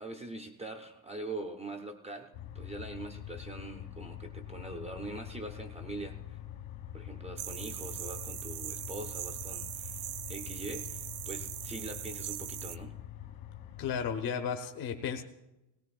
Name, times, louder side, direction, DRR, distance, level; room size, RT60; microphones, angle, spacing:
voice 1, 0.0-2.3 2.5-6.4 6.9-12.9, right 2 dB, 15° right, 2 dB, 0.4 m, -43 dB
sound 1, 2.3-14.1, left 11 dB, 80° left, 1.5 m, -45 dB
sound 2, 7.4-12.8, right 14 dB, 65° right, 0.6 m, -40 dB
voice 2, 13.8-15.2, left 7 dB, 50° left, 6 dB, 0.8 m, -34 dB
18.0 x 17.5 x 2.3 m, 0.97 s
cardioid pair, 170°, 46 cm